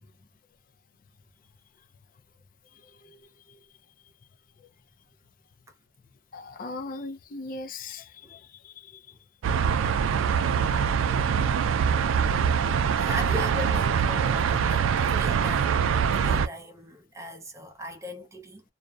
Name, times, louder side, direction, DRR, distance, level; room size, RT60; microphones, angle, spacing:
voice 1, 6.3-8.9, left 3 dB, 45° left, 0.5 m, -39 dB
sound 1, 9.4-16.5, right 7 dB, 85° right, 0.3 m, -24 dB
voice 2, 13.0-15.8 16.2-18.6, left 1 dB, 15° right, 0.6 m, -38 dB
2.5 x 2.1 x 2.3 m
head